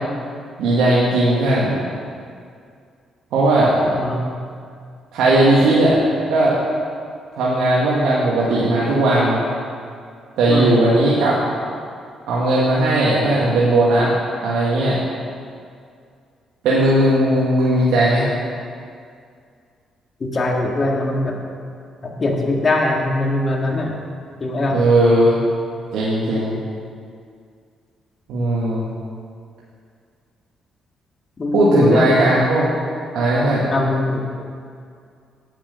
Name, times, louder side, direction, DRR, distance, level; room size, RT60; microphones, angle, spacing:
voice 1, 0.6-1.8 3.3-3.8 5.1-6.0 6.3-6.6 7.4-9.5 10.4-11.4 12.3-14.1 14.4-15.0 16.6-18.3 24.7-25.4 25.9-26.6 28.3-28.8 31.5-32.7 33.1-33.6, right 1 dB, 85° right, -7 dB, 1.7 m, -17 dB
voice 2, 3.8-4.3 10.5-10.7 20.2-21.4 22.0-24.0 24.4-24.8 31.4-32.3 33.7-34.3, left 2 dB, 40° left, 0 dB, 1.8 m, -21 dB
8.8 x 7.3 x 6.8 m, 2.3 s
cardioid pair, 90°, 0 cm